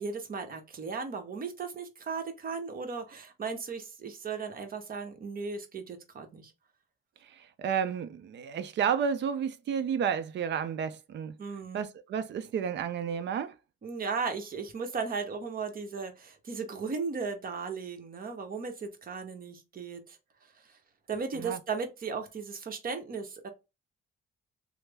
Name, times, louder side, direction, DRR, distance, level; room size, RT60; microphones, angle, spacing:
voice 1, 0.0-6.5 11.4-11.8 13.8-20.2 21.1-23.5, right 5 dB, 45° right, 1.0 m, -36 dB
voice 2, 7.3-11.4 11.7-13.5 21.4-21.6, right 7 dB, 65° right, 0.6 m, -31 dB
3.2 x 2.1 x 3.3 m
cardioid pair, 90°, 20 cm